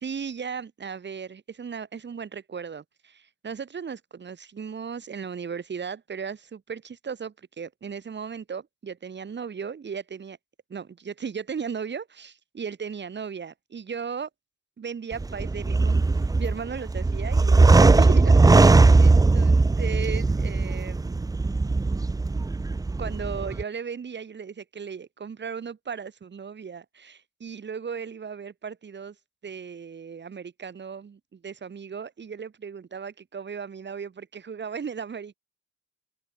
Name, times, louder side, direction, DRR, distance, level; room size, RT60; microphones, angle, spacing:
voice 1, 0.0-10.4 10.7-14.3 14.8-21.1 23.0-29.2 29.4-35.3, right 6 dB, 35° right, 1.8 m, -36 dB
sound 1, 15.1-23.6, right 3 dB, 10° right, 0.5 m, -19 dB
cardioid pair, 90°, 30 cm